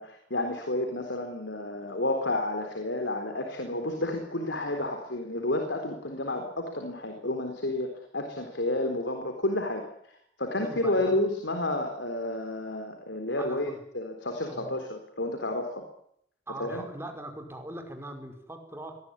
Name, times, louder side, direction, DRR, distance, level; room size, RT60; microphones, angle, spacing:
voice 1, 0.0-9.8 10.1-15.8 16.6-16.8, left 1 dB, 90° left, 5 dB, 4.0 m, -31 dB
voice 2, 10.6-11.1 13.4-13.8 14.5-14.7 16.5-19.0, right 1 dB, 15° right, 4 dB, 5.3 m, -41 dB
24.0 x 19.5 x 9.9 m, 0.73 s
head